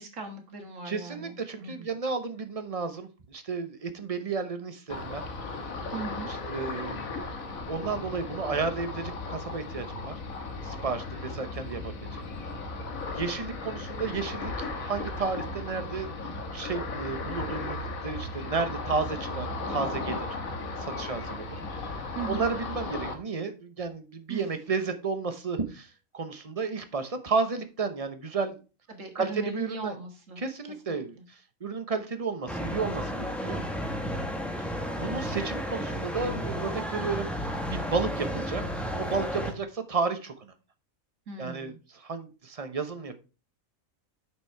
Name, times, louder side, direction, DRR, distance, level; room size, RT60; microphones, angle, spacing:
voice 1, 0.0-1.9 5.9-6.3 22.2-22.4 24.3-24.5 28.9-30.4 30.9-31.2 41.3-41.8, right 5 dB, 60° right, 4 dB, 2.0 m, -39 dB
voice 2, 0.8-5.2 6.3-7.1 7.6-10.1 10.6-12.2 13.1-16.1 16.4-20.3 20.8-21.6 22.0-28.6 29.1-30.0 30.4-33.6 34.6-34.7 35.0-40.5 41.4-43.2, right 4 dB, 30° right, 9 dB, 0.8 m, -32 dB
Ocean, 4.9-23.1, left 3 dB, 75° left, 1.6 m, -36 dB
sound 1, 32.5-39.5, equal, ahead, 1.0 m, -32 dB
6.5 x 5.9 x 4.5 m, 0.32 s
omnidirectional pair, 1.5 m